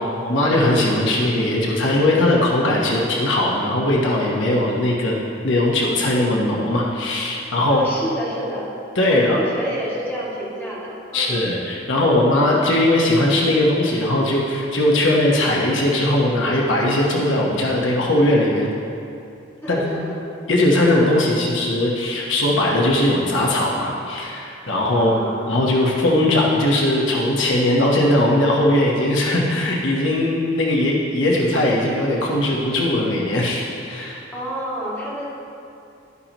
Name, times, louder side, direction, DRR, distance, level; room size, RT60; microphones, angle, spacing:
voice 1, 0.2-5.1 5.4-7.8 8.9-9.4 11.1-18.7 19.7-20.0 20.5-25.1 25.5-34.2, left 1 dB, 70° left, -3 dB, 1.3 m, -19 dB
voice 2, 7.7-8.7 9.1-11.4 19.6-20.0 25.0-25.5 34.3-35.3, right 1 dB, 10° left, -8 dB, 2.3 m, -29 dB
11.5 x 9.6 x 3.0 m, 2.6 s
head